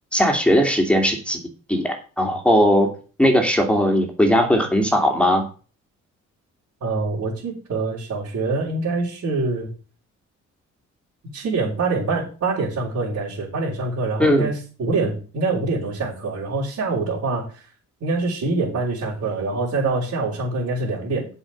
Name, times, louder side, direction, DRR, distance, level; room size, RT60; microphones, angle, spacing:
voice 1, 0.1-1.4 1.7-2.9 3.2-5.4 14.2-14.5, equal, 5° left, 2 dB, 2.7 m, -18 dB
voice 2, 6.8-9.7 11.3-17.6 18.0-21.3, right 3 dB, 60° right, -8 dB, 4.6 m, -25 dB
7.9 x 5.7 x 7.3 m, 0.37 s
cardioid pair, 90°, 30 cm